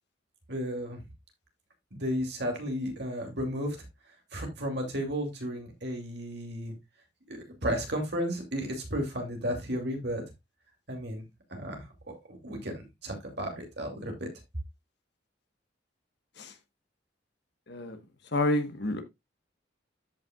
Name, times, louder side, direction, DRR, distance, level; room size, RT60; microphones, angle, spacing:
voice 1, 0.5-1.0 1.9-3.8 4.3-6.7 7.3-10.2 10.9-11.2 11.5-11.9 12.3-14.3, equal, 60° right, 2.7 m, -33 dB
voice 2, 18.3-19.0, left 1 dB, 60° left, 1.3 m, -28 dB
13.5 x 5.7 x 2.4 m
head